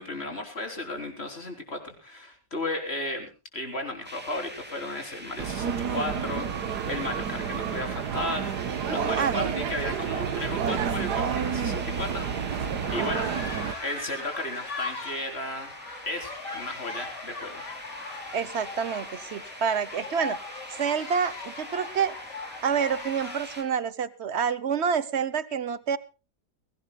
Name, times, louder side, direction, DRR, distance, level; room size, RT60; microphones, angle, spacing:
voice 1, 0.0-8.5 8.9-13.3 13.8-15.7 16.1-17.6, left 2 dB, 35° left, 4 dB, 4.1 m, -34 dB
sound 1, 4.0-23.6, right 1 dB, 5° right, 2.5 m, -44 dB
sound 2, 5.4-13.7, right 7 dB, 75° right, 1.6 m, -30 dB
voice 2, 9.2-9.6 13.0-13.4 18.3-20.4 20.7-22.1 22.6-26.0, right 7 dB, 50° right, 17 dB, 1.0 m, -28 dB
sound 3, 12.8-23.7, left 3 dB, 85° left, 4.1 m, -39 dB
22.5 x 17.5 x 2.3 m, 0.31 s
omnidirectional pair, 1.8 m